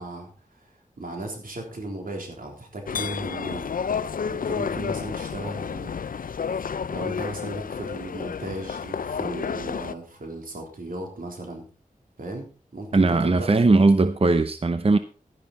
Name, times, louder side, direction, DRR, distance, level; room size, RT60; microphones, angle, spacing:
voice 1, 0.0-3.7 4.3-6.0 6.9-11.6 12.2-13.5, right 2 dB, 80° right, 3.7 m, -36 dB
sound 1, 2.9-9.9, left 6 dB, 80° left, 0.5 m, -30 dB
voice 2, 12.9-15.0, right 3 dB, 45° right, 0.8 m, -19 dB
12.0 x 10.5 x 4.2 m
wide cardioid pair, 60°, 14 cm